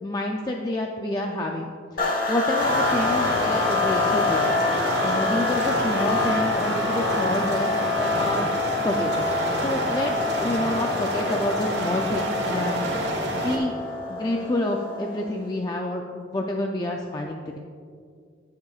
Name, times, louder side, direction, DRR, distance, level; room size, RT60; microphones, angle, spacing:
voice 1, 0.0-4.6 5.0-8.5 8.8-12.9 13.3-13.7 14.1-17.6, left 1 dB, 20° left, 1 dB, 0.4 m, -28 dB
sound 1, 2.0-15.4, left 3 dB, 45° left, 1.2 m, -26 dB
sound 2, 2.6-13.6, right 1 dB, 60° right, 1.6 m, -29 dB
18.5 x 6.7 x 2.4 m, 2.2 s
head